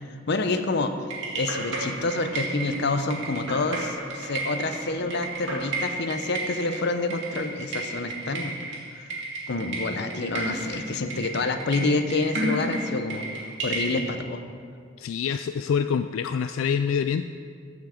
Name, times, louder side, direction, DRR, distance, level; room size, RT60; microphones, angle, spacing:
voice 1, 0.3-0.9 1.3-8.6 8.9-9.1 9.5-13.3 13.6-14.4, left 3 dB, 60° left, 8 dB, 0.7 m, -28 dB
sound 1, 1.1-14.0, right 2 dB, 65° right, 2.3 m, -33 dB
voice 2, 15.0-17.2, left 7 dB, 85° left, 9 dB, 0.3 m, -26 dB
14.5 x 5.9 x 5.0 m, 2.2 s
head